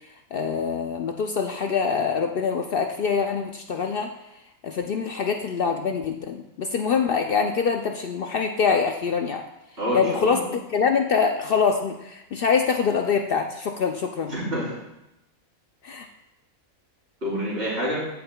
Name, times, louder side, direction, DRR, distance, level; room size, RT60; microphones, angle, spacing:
voice 1, 0.3-4.1 4.6-9.4 9.9-14.3 15.8-16.1, left 6 dB, 70° left, 4 dB, 0.5 m, -24 dB
voice 2, 9.8-10.5 14.3-14.8 17.2-18.1, equal, 45° right, -7 dB, 3.4 m, -28 dB
14.0 x 5.5 x 2.2 m, 0.90 s
omnidirectional pair, 1.4 m